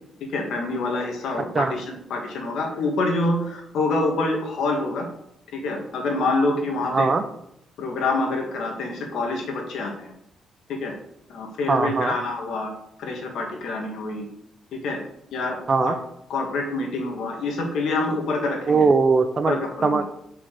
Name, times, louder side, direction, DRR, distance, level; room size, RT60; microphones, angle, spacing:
voice 1, 0.3-5.1 5.5-7.1 7.8-10.1 10.7-10.9 11.3-12.7 13.0-14.3 14.7-15.0 15.3-15.9 16.3-18.9 19.5-20.0, left 2 dB, 75° left, 1 dB, 2.2 m, -26 dB
voice 2, 11.7-12.1 15.7-15.9 18.7-19.6 19.8-20.0, right 4 dB, 35° right, 10 dB, 0.8 m, -20 dB
5.9 x 5.7 x 6.7 m, 0.76 s
cardioid pair, 90°, 0 cm